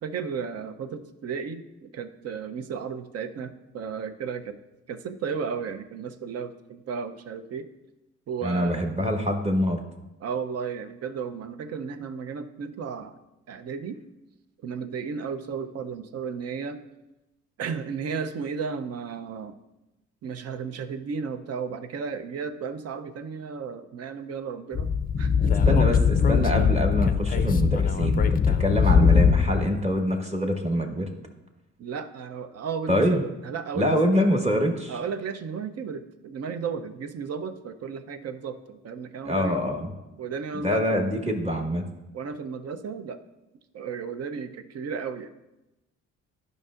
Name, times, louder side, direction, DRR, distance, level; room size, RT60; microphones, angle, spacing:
voice 1, 0.0-4.6 4.9-7.7 8.3-8.8 10.2-13.2 13.5-14.0 14.6-16.8 17.6-19.6 20.2-26.0 31.8-34.0 34.9-39.6 40.2-41.0 42.1-43.2 43.7-45.3, right 6 dB, 55° right, 10 dB, 0.6 m, -34 dB
voice 2, 8.4-9.8 25.7-31.1 32.9-33.2 33.7-35.0 39.2-39.9 40.5-41.8, equal, 20° right, 3 dB, 1.2 m, -25 dB
Speech / Wind, 24.8-29.7, left 6 dB, 30° left, 0.4 m, -21 dB
12.0 x 5.3 x 2.4 m, 0.98 s
cardioid pair, 90°, 30 cm